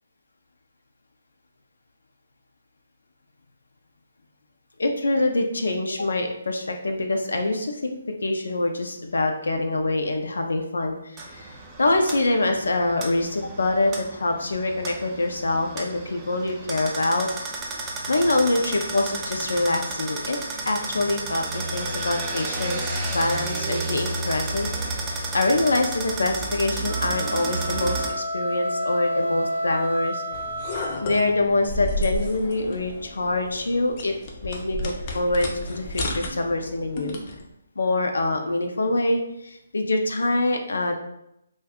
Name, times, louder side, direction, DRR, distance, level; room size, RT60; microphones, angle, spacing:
voice 1, 4.8-17.3 18.1-20.4 20.7-30.2 31.0-34.1 34.4-37.2 37.8-40.9, left 2 dB, 85° left, 3 dB, 0.4 m, -25 dB
sound 1, 11.2-28.1, right 2 dB, 15° right, 0.4 m, -32 dB
sound 2, 26.9-31.3, equal, 80° right, 0.7 m, -30 dB
sound 3, 30.3-37.4, left 1 dB, 35° left, 0.5 m, -32 dB
2.5 x 2.2 x 3.5 m, 0.81 s
hypercardioid pair, 155°, 0 cm